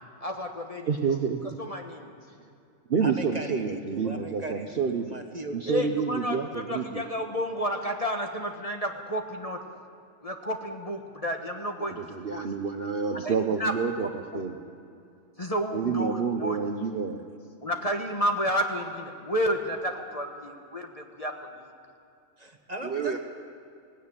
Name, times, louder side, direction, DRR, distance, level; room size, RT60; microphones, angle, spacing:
voice 1, 0.2-1.2 1.6-2.1 5.7-9.6 10.2-12.5 13.2-13.7 14.3-14.4 15.4-16.6 17.6-21.7, equal, 25° left, 3 dB, 1.3 m, -31 dB
voice 2, 0.9-1.6 2.9-5.1 5.5-7.0 11.8-14.6 15.7-17.2 22.8-23.2, right 6 dB, 50° right, 5 dB, 1.0 m, -29 dB
voice 3, 3.0-5.8 22.4-23.2, right 1 dB, 30° right, 5 dB, 1.5 m, -38 dB
18.0 x 16.5 x 8.8 m, 2.5 s
omnidirectional pair, 1.5 m